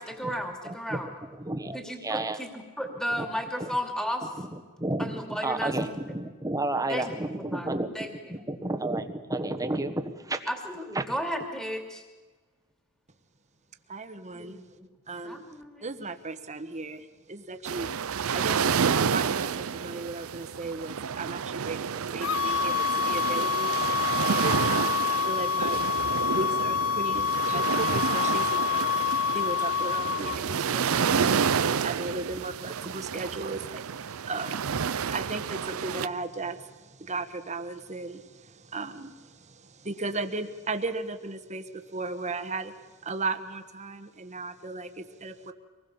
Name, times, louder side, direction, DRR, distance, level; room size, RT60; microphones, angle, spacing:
voice 1, 0.0-1.1 1.7-4.3 5.0-5.7 6.9-7.7 7.9-8.1 10.5-12.0 14.3-14.7 15.2-15.8, equal, 5° left, 3 dB, 2.6 m, -34 dB
voice 2, 0.6-2.4 3.2-3.3 3.6-3.7 4.4-10.4 10.9-11.0, right 2 dB, 15° right, 7 dB, 1.4 m, -32 dB
voice 3, 13.9-14.6 15.1-15.4 15.8-17.9 18.3-23.9 24.2-25.8 26.3-42.7 43.0-45.5, right 3 dB, 35° right, 8 dB, 1.4 m, -36 dB
sound 1, 17.7-36.1, right 6 dB, 80° right, 0.6 m, -29 dB
sound 2, 22.2-30.4, left 7 dB, 75° left, 0.7 m, -27 dB
25.0 x 20.0 x 7.1 m, 1.3 s
head